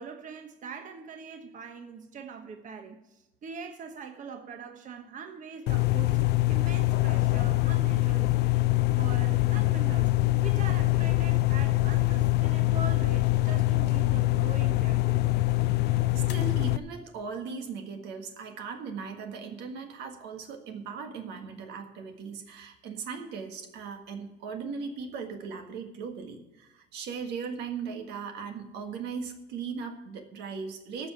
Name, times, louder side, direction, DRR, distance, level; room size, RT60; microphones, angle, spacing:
voice 1, 0.0-6.2 6.5-8.6 9.0-15.4, right 6 dB, 50° right, 1.2 m, -43 dB
sound 1, 5.7-16.8, left 18 dB, 75° left, 0.5 m, -24 dB
voice 2, 15.8-31.1, right 5 dB, 85° right, 1.6 m, -38 dB
14.0 x 5.4 x 8.8 m
cardioid pair, 110°, 17 cm